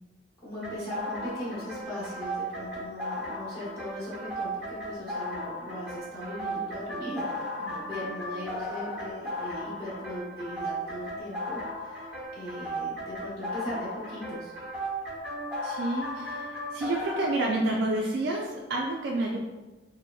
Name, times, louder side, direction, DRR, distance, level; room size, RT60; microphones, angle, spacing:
voice 1, 0.4-14.5, equal, 30° left, -9 dB, 1.0 m, -39 dB
sound 1, 0.6-17.3, equal, 10° right, 0.9 m, -36 dB
voice 2, 15.6-19.4, right 2 dB, 60° right, -2 dB, 0.3 m, -29 dB
3.4 x 2.1 x 2.3 m, 1.1 s
head